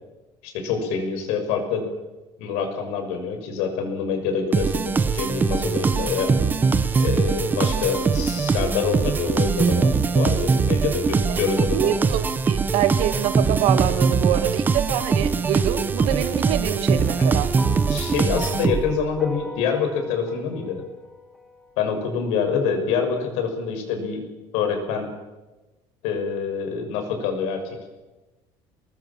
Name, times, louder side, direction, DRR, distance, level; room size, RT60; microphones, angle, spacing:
voice 1, 0.4-1.8 2.4-6.4 7.0-11.9 17.9-20.8 21.8-24.2 24.5-25.1 26.0-27.8, left 6 dB, 80° left, 4 dB, 6.4 m, -26 dB
sound 1, 4.5-19.1, right 5 dB, 15° right, 0.9 m, -22 dB
voice 2, 11.7-17.6, right 11 dB, 70° right, 11 dB, 1.8 m, -25 dB
sound 2, 17.6-22.0, equal, 5° left, 1.7 m, -39 dB
24.0 x 20.0 x 7.4 m, 1.1 s
cardioid pair, 180°, 11 cm